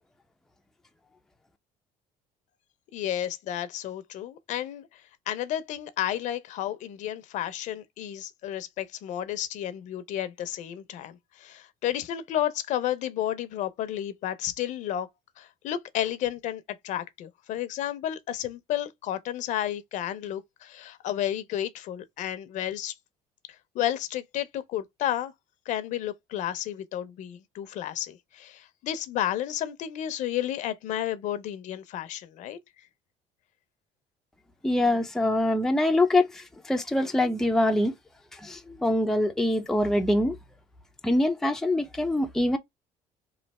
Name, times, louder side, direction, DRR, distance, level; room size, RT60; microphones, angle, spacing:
voice 1, 2.9-4.9 5.3-15.1 15.4-22.9 23.7-25.3 25.7-32.6, left 11 dB, 65° left, 0.6 m, -32 dB
voice 2, 34.6-38.0 38.3-40.4 41.0-42.6, left 1 dB, 5° left, 0.5 m, -24 dB
3.2 x 2.7 x 4.1 m
cardioid pair, 125°, 14 cm